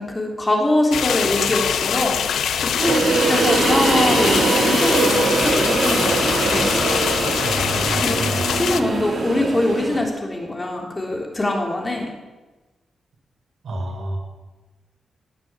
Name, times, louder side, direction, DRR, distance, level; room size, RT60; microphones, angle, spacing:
voice 1, 0.0-6.8 8.0-8.2 8.5-12.1, left 1 dB, 20° left, 0 dB, 3.5 m, -23 dB
sound 1, 0.9-8.8, left 8 dB, 90° left, 0.8 m, -23 dB
sound 2, 2.8-10.0, right 3 dB, 45° right, 4.3 m, -22 dB
voice 2, 7.4-8.5 13.6-14.2, right 1 dB, 60° right, 0 dB, 5.5 m, -28 dB
18.5 x 9.2 x 8.2 m, 1.2 s
wide cardioid pair, 115°, 0 cm